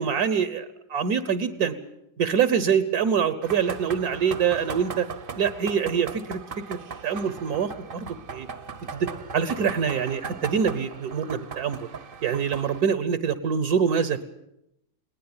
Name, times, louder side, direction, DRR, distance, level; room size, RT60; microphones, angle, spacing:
voice 1, 0.0-1.7 2.2-5.1 5.4-8.5 8.9-11.9 12.2-14.2, right 7 dB, 70° right, 13 dB, 1.5 m, -25 dB
sound 1, 3.4-12.8, right 5 dB, 40° right, 0.9 m, -38 dB
20.5 x 18.5 x 8.8 m, 0.83 s
omnidirectional pair, 1.7 m